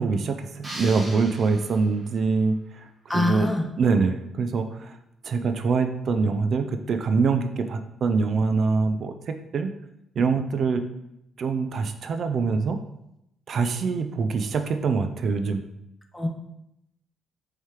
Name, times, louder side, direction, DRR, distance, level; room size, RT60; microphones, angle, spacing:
voice 1, 0.0-2.9 3.1-3.5 3.8-4.9 5.2-9.7 10.2-10.8 11.4-12.8 13.5-15.6, right 4 dB, 55° right, 7 dB, 0.3 m, -24 dB
sound 1, 0.6-2.2, right 1 dB, 20° right, 1.1 m, -39 dB
voice 2, 3.1-3.7 16.1-16.3, left 2 dB, 10° left, 4 dB, 0.6 m, -24 dB
4.6 x 3.2 x 2.9 m, 0.83 s
cardioid pair, 90°, 0 cm